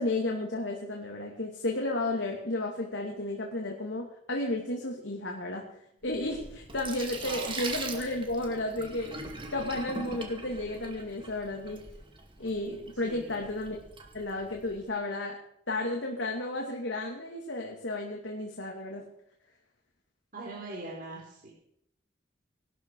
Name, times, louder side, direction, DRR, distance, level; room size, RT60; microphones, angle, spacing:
voice 1, 0.0-5.7 6.0-9.2 9.5-11.8 12.4-13.8 14.1-15.4 15.7-19.1, left 2 dB, 85° left, 0 dB, 2.7 m, -33 dB
Sink (filling or washing), 6.0-14.8, right 3 dB, 30° right, 2.5 m, -42 dB
voice 2, 7.2-7.5 12.9-13.5 20.3-21.5, right 2 dB, 50° right, -4 dB, 4.7 m, -42 dB
21.0 x 12.5 x 4.9 m, 0.73 s
head